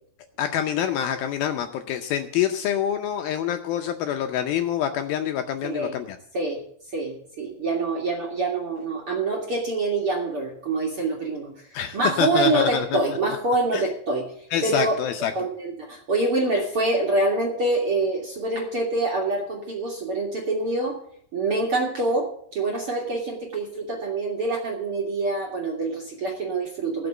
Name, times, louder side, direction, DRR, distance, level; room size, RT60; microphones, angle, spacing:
voice 1, 0.4-6.2 11.7-13.0 13.7-13.8 14.5-15.3, left 9 dB, 75° left, 6 dB, 2.3 m, -26 dB
voice 2, 5.6-6.0 6.3-6.6 6.9-14.3 14.6-15.0 15.4-21.0 21.3-27.1, right 2 dB, 45° right, 0 dB, 2.0 m, -26 dB
16.0 x 6.1 x 7.9 m, 0.64 s
omnidirectional pair, 4.8 m